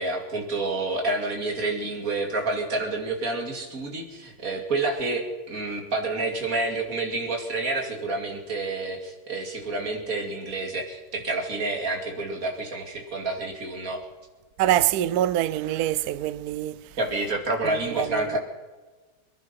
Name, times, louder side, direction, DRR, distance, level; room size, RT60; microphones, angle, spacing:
voice 1, 0.0-14.0 17.0-18.4, right 2 dB, 40° right, 2.8 m, -29 dB
voice 2, 14.6-16.9 17.9-18.4, right 13 dB, 90° right, 0.8 m, -25 dB
23.0 x 11.0 x 5.8 m
omnidirectional pair, 2.3 m